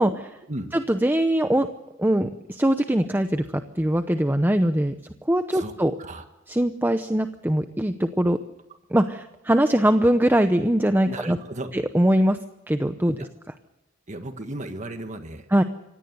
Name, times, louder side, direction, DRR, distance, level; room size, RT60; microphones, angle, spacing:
voice 1, 0.0-0.4 0.7-1.7 2.0-4.9 5.3-5.9 6.5-8.4 8.9-11.4 11.7-12.4 12.7-13.3 15.5-15.6, right 1 dB, 10° right, 8 dB, 0.8 m, -22 dB
voice 2, 11.1-11.7 14.1-15.5, right 1 dB, 40° right, 7 dB, 1.6 m, -34 dB
25.5 x 17.5 x 8.0 m, 0.93 s
head